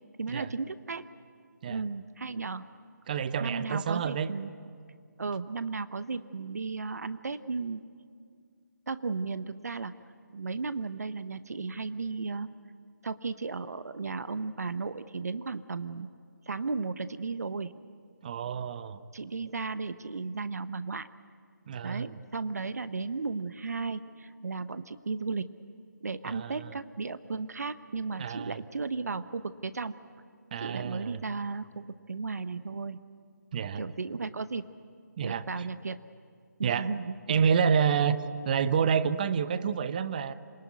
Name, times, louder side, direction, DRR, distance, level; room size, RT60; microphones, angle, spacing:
voice 1, 0.2-1.0 1.7-2.6 3.4-4.5 5.2-7.8 8.9-9.9 10.3-12.5 13.0-16.1 16.5-17.7 19.1-21.1 21.8-25.5 26.0-29.9 30.6-33.0 33.7-34.7 35.2-36.0 36.6-37.4, right 4 dB, 60° right, 13 dB, 0.9 m, -35 dB
voice 2, 3.1-4.3 18.2-19.0 21.7-22.2 26.2-26.7 28.2-28.6 30.5-31.2 33.5-33.8 35.2-35.5 36.6-36.9 37.3-38.2 38.4-40.3, right 7 dB, 25° right, 14 dB, 0.8 m, -28 dB
27.0 x 18.5 x 9.4 m, 2.2 s
figure-of-eight pair, 155°, 10 cm